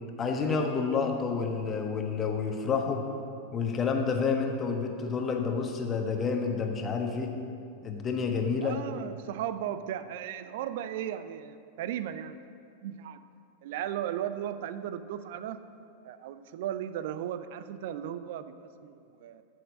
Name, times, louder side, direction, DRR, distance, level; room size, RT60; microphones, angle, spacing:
voice 1, 0.2-3.0 3.5-7.3 7.8-8.8, left 5 dB, 25° left, 3 dB, 1.3 m, -29 dB
voice 2, 8.6-12.4 12.8-13.2 13.6-15.6 16.0-19.4, right 10 dB, 50° right, 12 dB, 0.5 m, -36 dB
13.5 x 6.4 x 6.2 m, 2.5 s
figure-of-eight pair, 90°, 0 cm